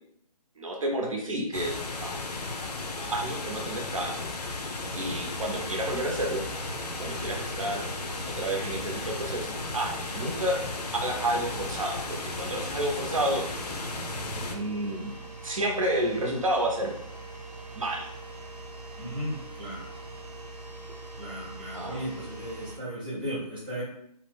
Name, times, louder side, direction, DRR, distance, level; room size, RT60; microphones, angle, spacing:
voice 1, 0.6-2.2 2.9-4.3 4.9-6.4 7.0-7.8 8.2-10.6 10.9-13.4 14.3-15.1 15.4-17.0 17.7-18.1 21.7-22.0, right 1 dB, 55° right, 1 dB, 0.7 m, -30 dB
sound 1, 1.5-14.6, left 3 dB, 75° left, 0.6 m, -35 dB
sound 2, 4.8-22.8, right 3 dB, 80° right, 0.9 m, -43 dB
voice 2, 19.0-19.8 21.2-23.8, equal, 15° right, -9 dB, 0.5 m, -35 dB
2.7 x 2.1 x 3.2 m, 0.71 s
hypercardioid pair, 170°, 21 cm